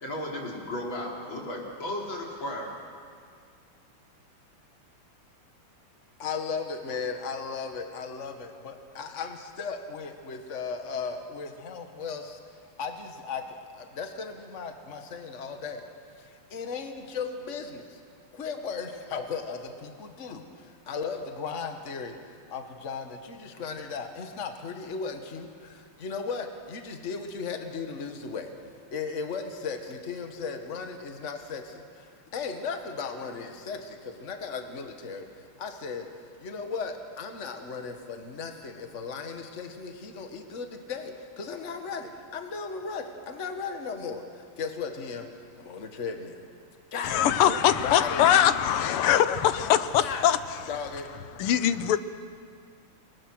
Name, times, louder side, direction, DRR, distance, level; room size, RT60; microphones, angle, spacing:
voice 1, 0.0-2.8, left 1 dB, 60° left, -2 dB, 4.4 m, -34 dB
voice 2, 6.2-12.4 12.8-15.9 16.2-18.0 18.3-22.2 22.5-28.5 28.9-36.1 36.4-45.3 45.6-46.4 46.9-47.2 47.5-48.3 50.0-50.3 50.7-51.1, left 5 dB, 35° left, 5 dB, 1.7 m, -36 dB
voice 3, 47.0-50.4 51.4-52.0, left 10 dB, 85° left, 13 dB, 1.8 m, -22 dB
29.0 x 21.0 x 6.4 m, 2.2 s
omnidirectional pair, 2.4 m